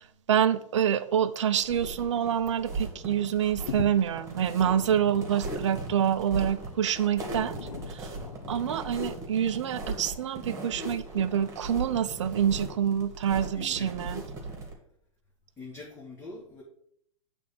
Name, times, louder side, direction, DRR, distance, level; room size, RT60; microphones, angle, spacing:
voice 1, 0.3-7.5 7.9-8.1 8.5-14.2, right 9 dB, 55° right, 0.7 m, -27 dB
sound 1, 1.6-14.7, right 2 dB, 15° right, 2.0 m, -38 dB
sound 2, 2.9-3.0 3.3-11.9 12.6-12.7, left 6 dB, 65° left, 0.8 m, -44 dB
voice 2, 13.5-14.1 15.6-16.6, left 2 dB, 15° left, 1.5 m, -44 dB
8.3 x 3.6 x 6.5 m
figure-of-eight pair, 110°, 19 cm